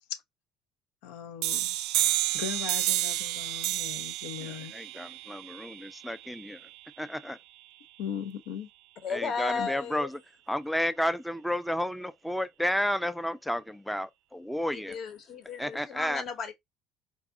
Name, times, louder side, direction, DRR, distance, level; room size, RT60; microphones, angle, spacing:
voice 1, 1.0-1.8 2.3-4.8 8.0-8.7 9.6-9.7, left 8 dB, 85° left, 0.8 m, -38 dB
sound 1, 1.4-6.8, right 15 dB, 85° right, 0.4 m, -31 dB
voice 2, 4.4-6.6 7.0-7.4 9.1-10.1 10.5-14.9 15.6-16.2, equal, ahead, 0.4 m, -32 dB
voice 3, 9.0-10.1 14.7-16.5, left 5 dB, 50° left, 1.3 m, -34 dB
4.0 x 2.5 x 3.5 m
cardioid pair, 110°, 0 cm